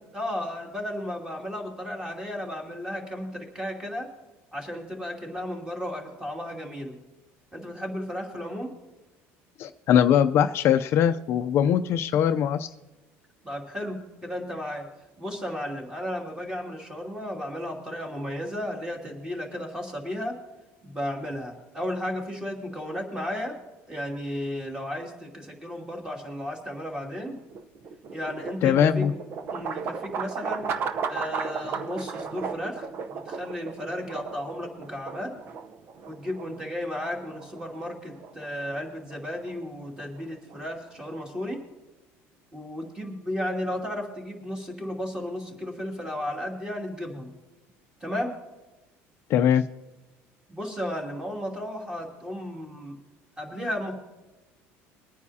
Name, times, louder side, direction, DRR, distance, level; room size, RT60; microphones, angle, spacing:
voice 1, 0.0-4.1 4.5-6.9 7.5-8.7 13.4-14.8 15.2-20.3 20.8-23.6 23.9-27.4 28.1-29.1 29.5-30.7 31.1-35.3 36.1-41.6 42.5-47.3 48.0-48.3 50.5-52.9 53.4-53.9, left 1 dB, 15° right, 0 dB, 2.6 m, -34 dB
voice 2, 9.6-12.7 28.6-29.1 49.3-49.6, left 9 dB, 50° left, 9 dB, 0.5 m, -21 dB
sound 1, 27.2-41.2, right 6 dB, 40° right, 0.8 m, -36 dB
23.5 x 9.5 x 2.8 m, 1.1 s
cardioid pair, 140°, 5 cm